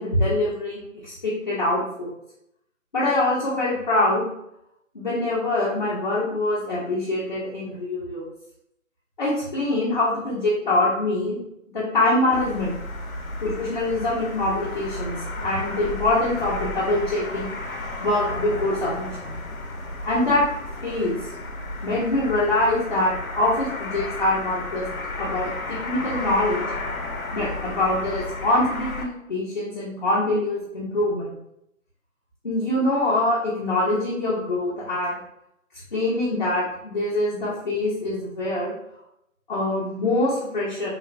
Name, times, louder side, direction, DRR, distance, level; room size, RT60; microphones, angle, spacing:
voice 1, 0.0-2.1 2.9-4.3 4.9-8.3 9.2-11.4 11.7-12.7 13.4-17.5 18.0-19.3 20.0-20.4 20.8-21.2 21.8-24.8 25.2-26.6 27.3-31.3 32.4-35.2 35.9-38.7 39.5-40.9, left 2 dB, 35° left, -7 dB, 0.5 m, -24 dB
sound 1, 12.3-29.0, left 2 dB, 85° left, 0.6 m, -33 dB
2.9 x 2.1 x 2.4 m, 0.80 s
figure-of-eight pair, 150°, 41 cm